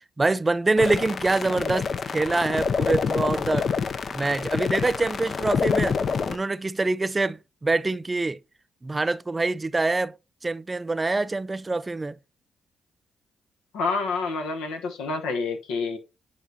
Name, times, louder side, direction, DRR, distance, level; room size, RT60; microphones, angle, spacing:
voice 1, 0.2-3.7 4.1-6.0 6.3-8.4 8.8-10.1 10.4-12.2, right 3 dB, 25° right, 0.4 m, -25 dB
sound 1, 0.8-6.4, left 5 dB, 55° left, 0.5 m, -27 dB
voice 2, 13.7-16.0, left 4 dB, 85° left, 1.0 m, -28 dB
8.9 x 4.8 x 2.8 m
supercardioid pair, 55°, 0 cm